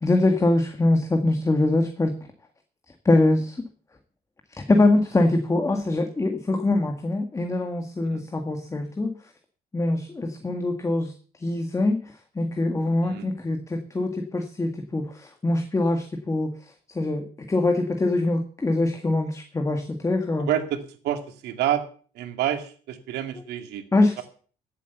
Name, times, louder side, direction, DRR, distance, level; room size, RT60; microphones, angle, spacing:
voice 1, 0.0-2.2 3.1-3.7 4.5-9.1 9.7-11.1 11.4-12.0 12.4-16.5 17.0-20.5 23.9-24.2, left 2 dB, 20° left, 6 dB, 1.8 m, -23 dB
voice 2, 20.4-21.8 22.1-23.8, right 11 dB, 80° right, 7 dB, 2.3 m, -28 dB
15.0 x 8.2 x 6.9 m, 0.43 s
cardioid pair, 110°, 17 cm